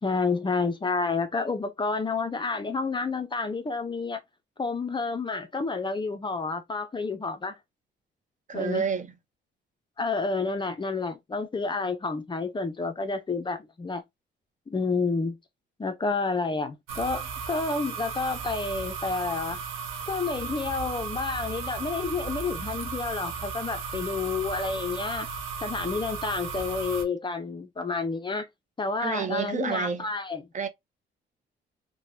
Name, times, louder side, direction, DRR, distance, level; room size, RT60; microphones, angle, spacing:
voice 1, 0.0-4.2 4.6-7.6 8.5-8.9 10.0-14.0 14.7-15.4 15.8-19.6 20.1-25.3 25.6-28.5 28.8-30.4, left 4 dB, 25° left, 0.5 m, -29 dB
voice 2, 8.5-9.1 29.0-30.1 30.5-30.7, right 6 dB, 40° right, 0.6 m, -29 dB
sound 1, 16.9-27.0, right 5 dB, 85° right, 0.7 m, -35 dB
3.0 x 2.1 x 2.5 m
cardioid pair, 90°, 20 cm